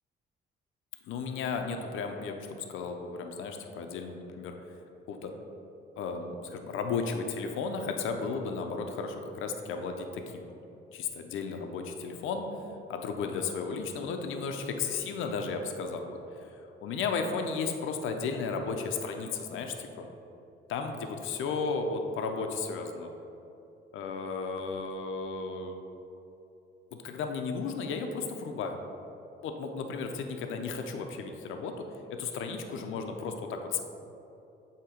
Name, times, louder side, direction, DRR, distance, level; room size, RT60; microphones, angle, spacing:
voice 1, 1.1-2.4 2.7-4.5 5.1-5.3 6.0-10.4 10.9-12.5 12.9-16.5 16.8-20.1 20.7-23.1 23.9-25.8 26.9-28.8 29.4-31.8 32.1-33.8, left 4 dB, 85° left, 5 dB, 0.6 m, -34 dB
7.6 x 2.9 x 4.9 m, 2.9 s
cardioid pair, 90°, 20 cm